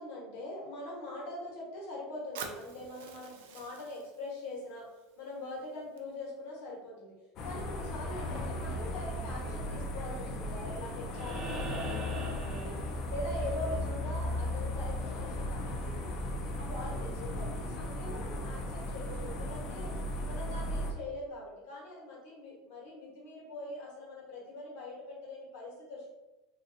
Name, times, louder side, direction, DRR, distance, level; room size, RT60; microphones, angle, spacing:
voice 1, 0.0-4.9 5.2-12.8 13.1-16.2 16.6-19.9 20.2-26.1, left 1 dB, 75° left, -3 dB, 1.2 m, -43 dB
Fire, 2.4-6.4, right 6 dB, 90° right, 0.4 m, -49 dB
sound 1, 7.4-20.9, left 1 dB, 40° left, 0.5 m, -36 dB
sound 2, 11.1-13.4 15.3-15.4, right 1 dB, 25° right, 0.7 m, -40 dB
2.9 x 2.6 x 2.6 m, 1.0 s
supercardioid pair, 155°, 0 cm